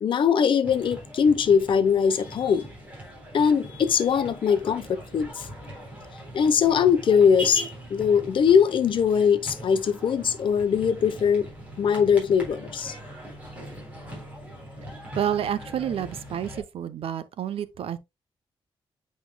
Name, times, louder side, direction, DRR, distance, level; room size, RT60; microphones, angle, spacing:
voice 1, 0.0-2.7 3.3-5.5 6.3-7.6 7.9-11.5 11.8-12.9, left 7 dB, 60° left, 0.8 m, -21 dB
sound 1, 0.6-16.6, equal, 15° right, 3.8 m, -41 dB
voice 2, 15.1-18.0, right 9 dB, 80° right, 0.7 m, -29 dB
8.2 x 5.2 x 2.2 m
wide cardioid pair, 155°, 10 cm